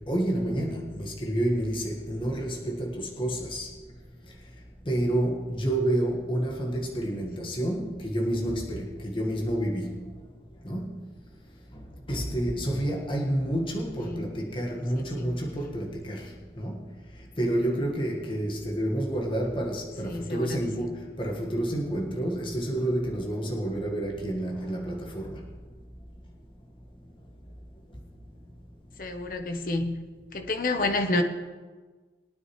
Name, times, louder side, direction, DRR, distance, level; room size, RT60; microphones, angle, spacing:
voice 1, 0.1-3.7 4.8-10.0 10.6-10.9 11.7-16.3 16.6-16.8 17.4-25.4, right 1 dB, 30° left, 1.6 m, -29 dB
voice 2, 15.0-15.4 20.0-20.9 29.0-30.0 30.3-31.2, left 2 dB, 50° left, 1.0 m, -30 dB
22.0 x 9.5 x 3.2 m
head